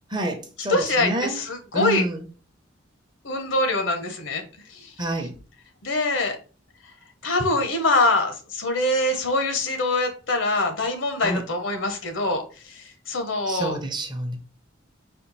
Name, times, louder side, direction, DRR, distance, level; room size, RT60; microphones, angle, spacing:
voice 1, 0.1-1.4 1.7-2.2 5.0-5.3 11.2-11.4 13.5-14.4, right 2 dB, 25° right, 0.7 m, -28 dB
voice 2, 0.7-2.0 3.2-4.4 4.7-4.9 5.8-6.4 7.2-12.4 12.7-13.8, left 2 dB, 75° left, 1.0 m, -24 dB
4.3 x 2.4 x 4.0 m
head